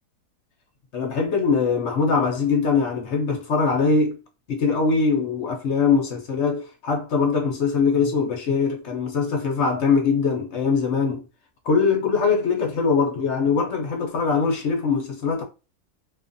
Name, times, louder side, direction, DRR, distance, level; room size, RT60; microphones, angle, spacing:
voice 1, 0.9-4.2 4.5-11.2 11.6-15.4, left 5 dB, 60° left, 0.8 m, -22 dB
2.6 x 2.4 x 2.5 m
omnidirectional pair, 1.6 m